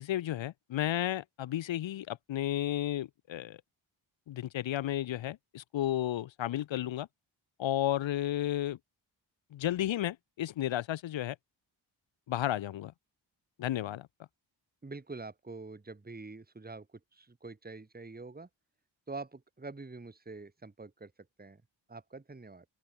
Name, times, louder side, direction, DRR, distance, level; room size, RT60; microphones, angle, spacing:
voice 1, 0.0-3.6 4.3-7.1 7.6-8.8 9.5-11.4 12.3-12.9 13.6-14.1, left 12 dB, 65° left, 0.7 m, -33 dB
voice 2, 14.8-18.5 19.1-21.1 21.4-21.6 21.9-22.7, right 3 dB, 20° right, 1.9 m, -45 dB
open air
cardioid pair, 60°, 49 cm